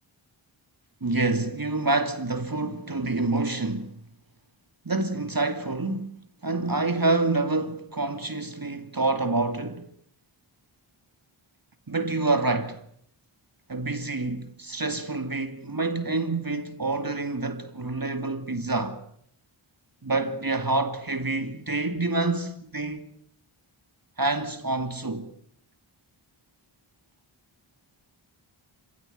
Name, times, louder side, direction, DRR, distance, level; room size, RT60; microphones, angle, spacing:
voice 1, 1.0-4.0 4.8-6.1 6.4-9.9 11.9-12.8 13.7-19.0 20.0-23.1 24.2-25.3, right 2 dB, 45° right, 2.6 m, -27 dB
28.0 x 17.0 x 9.3 m
wide cardioid pair, 55°, 50 cm